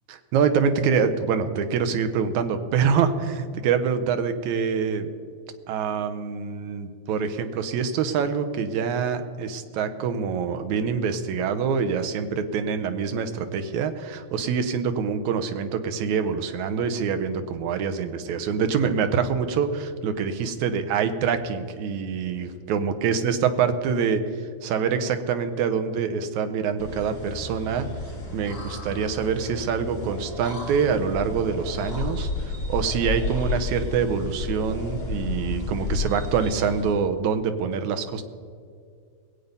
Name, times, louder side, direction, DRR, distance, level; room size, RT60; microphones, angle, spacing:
voice 1, 0.3-5.1 5.7-24.2 24.6-27.9 28.3-38.2, right 6 dB, 80° right, 9 dB, 2.2 m, -25 dB
sound 1, 26.8-36.9, left 3 dB, 40° left, 2.7 m, -32 dB
20.0 x 8.4 x 5.3 m, 2.2 s
omnidirectional pair, 3.3 m